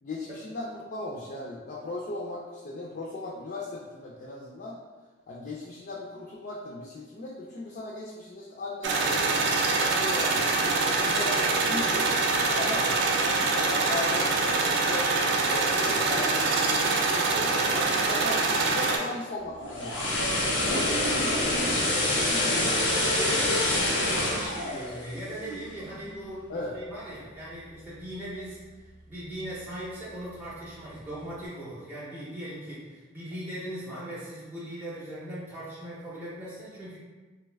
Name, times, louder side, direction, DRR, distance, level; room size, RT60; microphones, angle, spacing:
voice 1, 0.0-4.8 5.3-10.7 11.0-12.1 12.5-15.1 15.5-20.4 20.7-20.9 21.2-21.9 22.2-22.7 26.5-26.7, left 2 dB, 50° left, -4 dB, 0.4 m, -37 dB
sound 1, 8.8-19.0, right 3 dB, 65° right, 0.4 m, -25 dB
sound 2, 19.5-25.7 26.1-26.3, left 1 dB, 90° left, 0.7 m, -26 dB
voice 2, 22.4-22.7 23.1-37.0, right 1 dB, 10° right, -10 dB, 0.5 m, -39 dB
2.7 x 2.2 x 3.2 m, 1.3 s
head